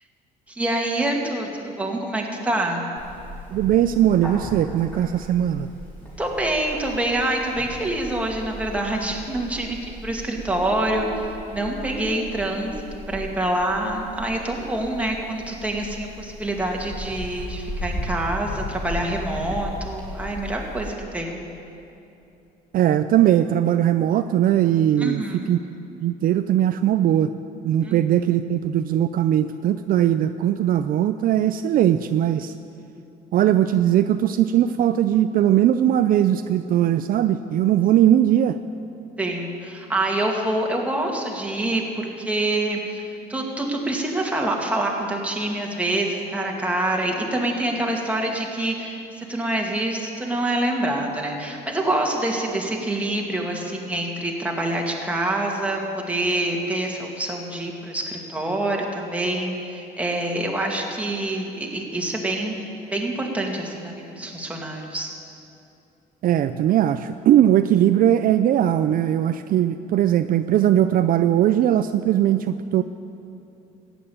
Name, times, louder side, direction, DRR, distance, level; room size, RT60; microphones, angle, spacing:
voice 1, 0.5-2.8 6.2-12.8 13.1-21.4 25.0-25.5 27.8-28.0 39.2-43.0 43.3-62.6 62.9-65.1, right 1 dB, 10° right, 0 dB, 2.3 m, -26 dB
Bird, 3.0-20.9, equal, 10° left, 4.2 m, -36 dB
voice 2, 3.5-5.7 22.7-25.6 26.0-27.3 27.6-32.5 33.3-38.6 66.2-72.8, right 11 dB, 55° right, 10 dB, 0.5 m, -19 dB
14.5 x 9.1 x 8.7 m, 2.8 s
cardioid pair, 110°, 17 cm